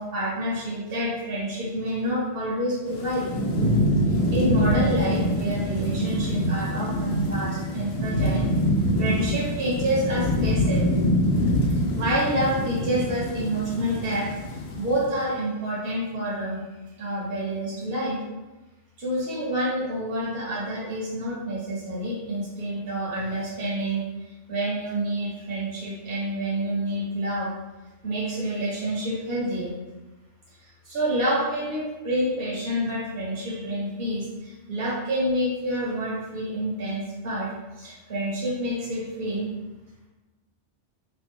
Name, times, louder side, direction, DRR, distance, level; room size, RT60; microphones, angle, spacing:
voice 1, 0.0-3.3 4.1-8.4 8.9-10.9 11.6-16.6 17.0-18.2 19.0-27.5 28.0-29.7 30.5-37.5 37.8-39.5, right 1 dB, 55° right, -6 dB, 1.2 m, -28 dB
Thunderstorm / Rain, 2.9-15.1, equal, 70° left, 0.8 m, -25 dB
2.8 x 2.4 x 3.4 m, 1.1 s
omnidirectional pair, 1.2 m